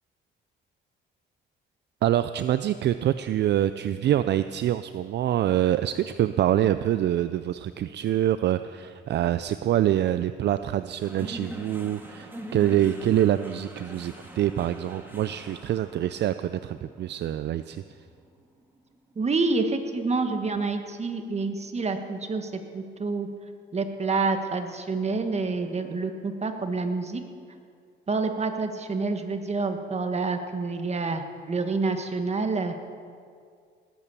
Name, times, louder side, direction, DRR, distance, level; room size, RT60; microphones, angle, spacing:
voice 1, 2.0-17.8, right 12 dB, 60° right, 12 dB, 0.4 m, -25 dB
sound 1, 11.0-19.5, equal, 10° right, 2.2 m, -43 dB
voice 2, 19.1-23.3 23.7-27.2 28.1-32.7, right 3 dB, 35° right, 6 dB, 1.5 m, -28 dB
19.5 x 8.6 x 7.0 m, 2.2 s
cardioid pair, 90°, 20 cm